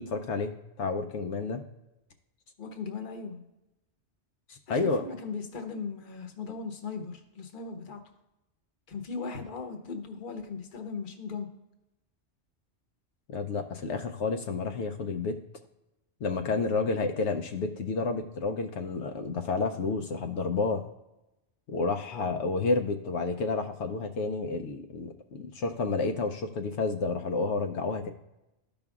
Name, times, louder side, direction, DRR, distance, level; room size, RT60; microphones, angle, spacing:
voice 1, 0.0-1.6 4.5-5.0 13.3-15.4 16.2-20.8 21.7-28.1, left 3 dB, 80° left, 5 dB, 0.9 m, -30 dB
voice 2, 2.6-3.4 4.7-8.0 8.9-11.5 22.1-22.3, left 4 dB, 50° left, 5 dB, 1.0 m, -38 dB
13.5 x 5.3 x 2.4 m, 0.94 s
omnidirectional pair, 1.2 m